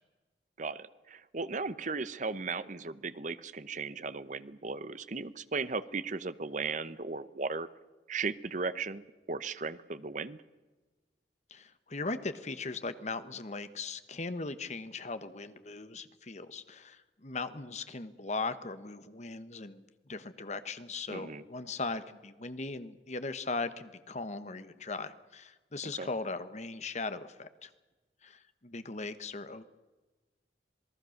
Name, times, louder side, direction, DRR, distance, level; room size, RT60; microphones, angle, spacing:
voice 1, 0.6-7.7 8.1-10.4 21.1-21.4 26.0-26.1, right 4 dB, 45° right, 14 dB, 0.9 m, -36 dB
voice 2, 11.5-19.8 20.1-27.7 28.2-29.6, left 3 dB, 40° left, 11 dB, 1.2 m, -39 dB
27.5 x 19.0 x 6.6 m, 1.2 s
head